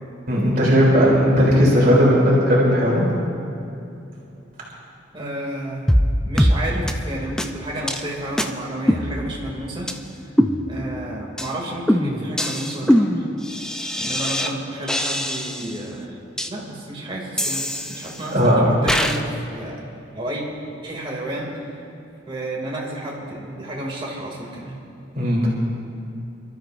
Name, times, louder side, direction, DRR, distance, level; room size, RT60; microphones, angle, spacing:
voice 1, 0.3-3.0 18.3-18.7 25.1-25.5, equal, 50° right, -5 dB, 3.1 m, -16 dB
voice 2, 5.1-5.8 6.2-10.3 10.7-13.2 14.0-16.2 16.5-19.8 20.1-20.4 20.8-21.5 22.3-24.8, right 1 dB, 30° right, -3 dB, 2.5 m, -31 dB
sound 1, 5.9-6.1 6.4-6.6 6.9-7.0 7.4-7.5 7.9-8.0 8.4-8.5 8.9-9.5 9.9-10.0 10.4-11.0 11.4-11.5 11.9-14.5 14.9-15.8 16.4-16.5 17.4-18.3 18.9-19.2, equal, 5° left, 0.5 m, -22 dB
28.0 x 13.0 x 2.6 m, 2.7 s
head